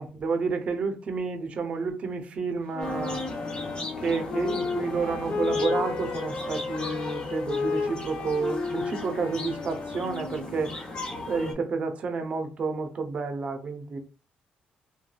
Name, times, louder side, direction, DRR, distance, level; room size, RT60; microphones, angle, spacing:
voice 1, 0.0-3.2 4.0-10.8 11.3-14.0, right 4 dB, 45° right, 0.6 m, -30 dB
Wind instrument woodwind instrument, 2.7-10.7, left 4 dB, 50° left, 0.5 m, -33 dB
sound 1, 2.8-11.5, left 2 dB, 30° left, 1.0 m, -38 dB
3.2 x 2.2 x 2.2 m
cardioid pair, 125°, 3 cm